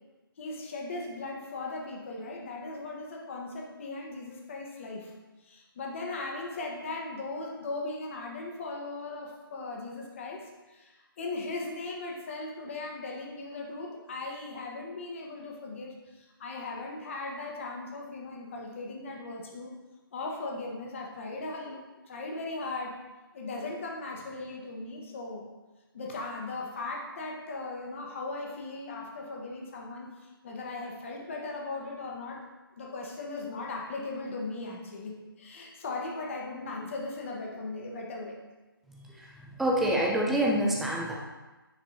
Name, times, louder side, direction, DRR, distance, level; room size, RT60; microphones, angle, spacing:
voice 1, 0.4-5.1 5.4-19.7 20.1-21.8 22.1-23.0 23.3-25.5 25.9-32.4 32.7-38.4, left 3 dB, 35° left, 0 dB, 1.4 m, -38 dB
voice 2, 38.9-41.1, right 1 dB, ahead, -3 dB, 0.6 m, -27 dB
9.2 x 4.4 x 4.1 m, 1.2 s
figure-of-eight pair, 150°, 12 cm